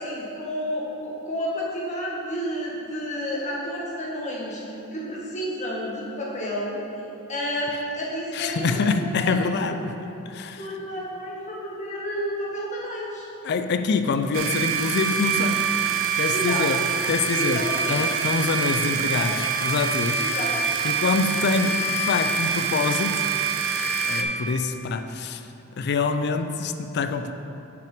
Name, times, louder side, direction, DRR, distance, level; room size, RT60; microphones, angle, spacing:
voice 1, 0.0-4.6 4.9-6.8 7.3-9.8 10.6-13.3 16.3-16.6 17.4-18.0 19.2-19.3 20.2-20.5, equal, 35° left, -5 dB, 1.5 m, -31 dB
voice 2, 8.3-10.0 10.3-10.7 13.4-15.7 16.2-16.8 17.1-20.3 20.8-23.2 24.1-25.5 25.8-27.3, left 4 dB, 55° left, 9 dB, 0.4 m, -25 dB
sound 1, 14.3-24.2, right 6 dB, 75° right, 0.6 m, -25 dB
6.1 x 5.8 x 5.0 m, 2.9 s
head